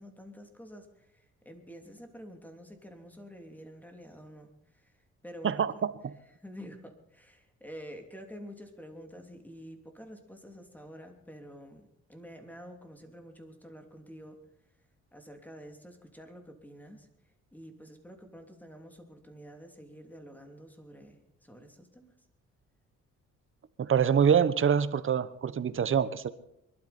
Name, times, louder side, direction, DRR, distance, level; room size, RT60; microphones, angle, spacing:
voice 1, 0.0-4.9 5.2-5.6 6.4-14.4 15.1-17.1 17.5-21.2 21.4-22.1, equal, 5° left, 5 dB, 2.9 m, -48 dB
voice 2, 5.4-6.1 23.8-26.3, right 7 dB, 45° right, 14 dB, 1.1 m, -25 dB
22.5 x 12.5 x 4.4 m, 0.81 s
cardioid pair, 90°, 30 cm